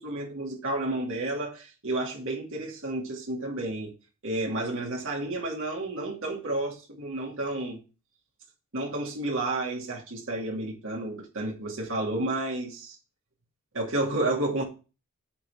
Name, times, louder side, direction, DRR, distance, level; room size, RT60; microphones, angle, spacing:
voice 1, 0.0-3.9 4.2-7.8 8.7-13.0 13.7-14.6, right 2 dB, 60° right, 2.6 m, -31 dB
8.5 x 4.1 x 6.9 m
head